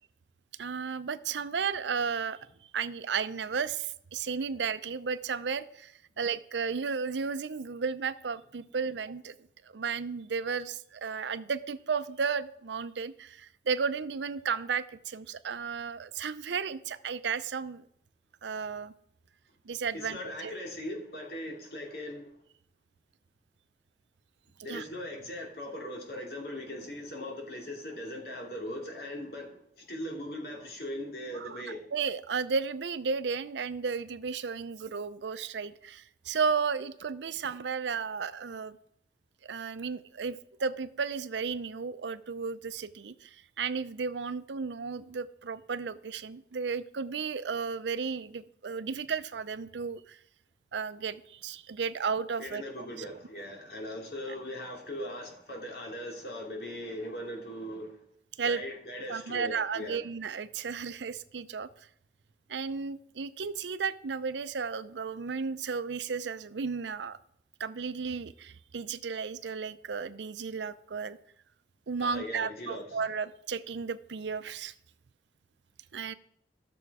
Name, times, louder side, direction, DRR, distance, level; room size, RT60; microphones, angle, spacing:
voice 1, 0.6-2.4 2.7-9.4 9.6-17.8 18.4-18.9 19.6-20.5 24.7-24.8 31.3-31.6 31.9-38.8 39.4-50.2 50.7-53.1 58.4-58.6 59.1-61.7 62.5-67.2 67.6-71.2 71.9-74.7 75.9-76.1, right 5 dB, 85° right, 14 dB, 0.5 m, -34 dB
voice 2, 19.9-22.3 24.6-31.8 52.4-58.0 58.4-60.0 72.0-73.0, left 1 dB, 60° left, 0 dB, 2.7 m, -39 dB
13.5 x 6.8 x 4.8 m, 0.70 s
head